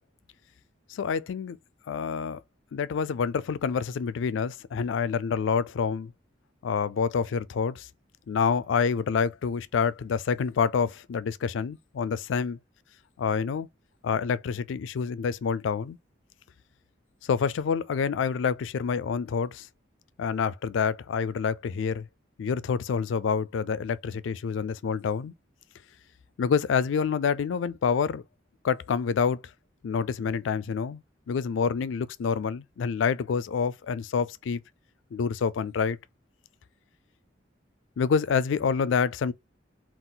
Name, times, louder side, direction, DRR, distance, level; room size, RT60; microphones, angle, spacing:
voice 1, 0.9-1.6 1.9-2.4 2.7-6.1 6.6-7.9 8.3-12.6 13.2-13.7 14.0-16.0 17.2-19.7 20.2-22.1 22.4-25.3 26.4-28.2 28.6-29.4 29.8-31.0 31.3-34.6 35.1-36.0 38.0-39.3, left 6 dB, 80° left, 0.3 m, -27 dB
3.8 x 2.4 x 3.9 m
head